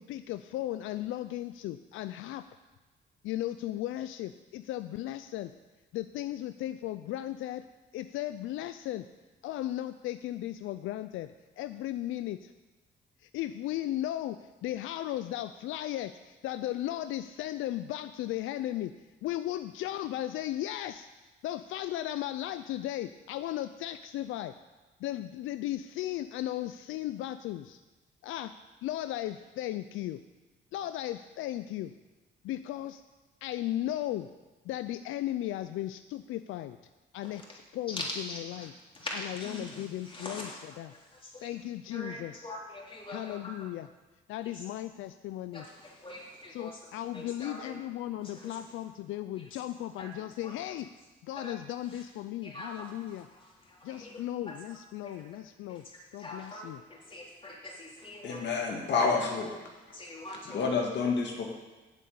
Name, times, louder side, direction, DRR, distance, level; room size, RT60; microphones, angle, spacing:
voice 1, 0.0-2.4 3.2-5.5 5.9-7.6 7.9-9.1 9.4-12.5 13.2-18.9 19.2-21.1 21.4-24.5 25.0-27.8 28.2-28.5 28.8-30.2 30.7-31.9 32.4-33.0 33.4-34.3 34.6-36.8 37.1-37.4 37.7-38.0 38.6-38.7 39.6-40.5 40.8-40.9 41.4-42.5 43.1-43.9 44.3-45.6 46.5-50.9 51.2-53.3 53.8-55.8 56.1-56.8, left 13 dB, 85° left, 11 dB, 0.4 m, -36 dB
voice 2, 37.9-38.7 38.9-41.5 41.9-43.7 44.4-44.7 45.5-46.8 47.1-47.8 48.2-48.8 49.4-49.6 50.0-50.1 50.4-50.5 51.3-51.6 51.8-52.0 52.4-54.6 55.0-55.3 55.7-58.7 59.7-60.7, left 1 dB, 25° left, -4 dB, 3.6 m, -44 dB
voice 3, 58.2-59.5 60.5-61.4, left 4 dB, 65° left, 0 dB, 1.7 m, -28 dB
8.2 x 7.5 x 8.5 m, 1.2 s
cardioid pair, 90°, 20 cm